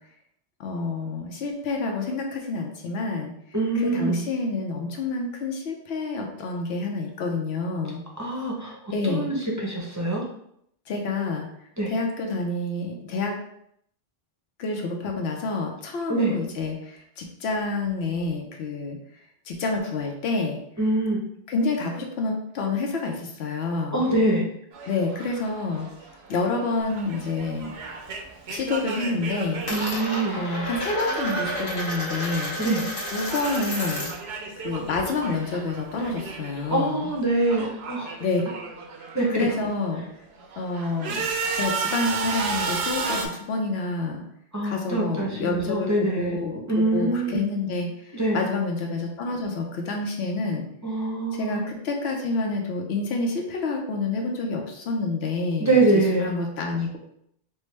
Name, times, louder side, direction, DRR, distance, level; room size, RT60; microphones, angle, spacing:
voice 1, 0.6-3.3 3.7-8.0 8.9-9.3 10.9-11.5 11.9-13.3 14.6-19.0 19.5-20.6 21.5-24.0 24.9-25.9 26.3-27.7 28.5-29.6 30.4-32.6 33.1-34.1 34.6-37.1 38.2-38.4 39.3-40.0 40.5-41.3 41.5-44.2 44.6-50.7 51.3-57.0, left 3 dB, 85° left, 1 dB, 0.9 m, -28 dB
voice 2, 3.5-4.2 8.2-8.7 9.0-10.2 11.8-11.9 16.1-16.3 20.8-21.2 23.9-24.5 29.7-30.4 32.6-32.8 36.7-38.1 39.1-39.5 44.5-46.4 46.7-47.4 48.1-48.4 50.8-51.6 55.6-56.3, right 2 dB, 20° right, -3 dB, 0.5 m, -24 dB
sound 1, 24.7-32.8 33.0-36.8 37.0-39.7 40.2-43.3, right 4 dB, 85° right, 0.9 m, -33 dB
Coin (dropping), 26.8-28.0 28.3-28.8 29.0-34.3 34.6-36.3, equal, 65° left, 1.1 m, -33 dB
4.5 x 2.1 x 3.2 m, 0.72 s
omnidirectional pair, 1.0 m